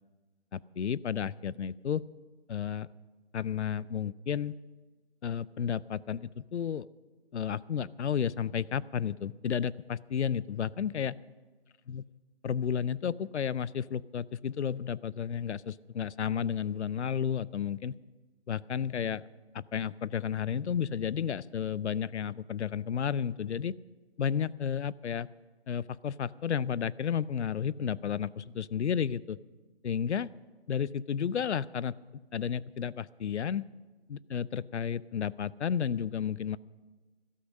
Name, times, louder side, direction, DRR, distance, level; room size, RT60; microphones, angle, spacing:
voice 1, 0.5-2.0 2.5-2.9 3.3-4.6 5.2-6.9 7.3-11.2 11.9-12.0 12.4-18.0 18.5-19.3 19.5-23.8 24.2-25.3 25.7-29.4 29.8-30.3 30.7-32.0 32.3-33.7 34.1-36.6, left 8 dB, 90° left, 21 dB, 0.5 m, -32 dB
13.0 x 12.5 x 6.2 m, 1.3 s
hypercardioid pair, 160°, 33 cm